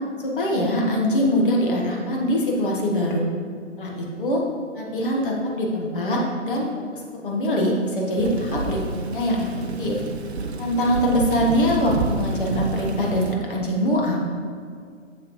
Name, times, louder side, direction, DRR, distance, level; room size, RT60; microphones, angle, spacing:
voice 1, 0.2-3.3 3.8-4.4 4.7-6.7 6.9-8.8 9.1-10.0 10.6-14.3, equal, 40° left, -2 dB, 1.3 m, -23 dB
Thunder / Rain, 8.2-13.4, right 4 dB, 55° right, 0.6 m, -29 dB
7.4 x 6.4 x 3.1 m, 2.1 s
figure-of-eight pair, 140°, 39 cm